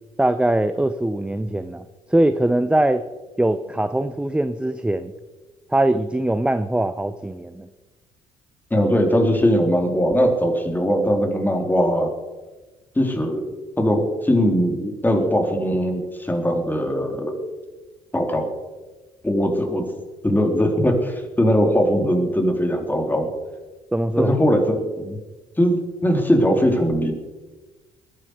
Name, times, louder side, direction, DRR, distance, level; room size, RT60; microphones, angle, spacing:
voice 1, 0.2-1.8 2.1-3.0 3.4-5.1 5.7-7.7 23.9-24.4, right 1 dB, 5° right, 11 dB, 0.9 m, -21 dB
voice 2, 8.7-12.1 13.0-13.4 13.8-17.4 18.1-18.5 19.2-19.8 20.2-23.3 24.2-25.2 25.6-27.1, equal, 10° left, 3 dB, 3.9 m, -20 dB
22.5 x 10.0 x 5.0 m, 1.2 s
hypercardioid pair, 50°, 15 cm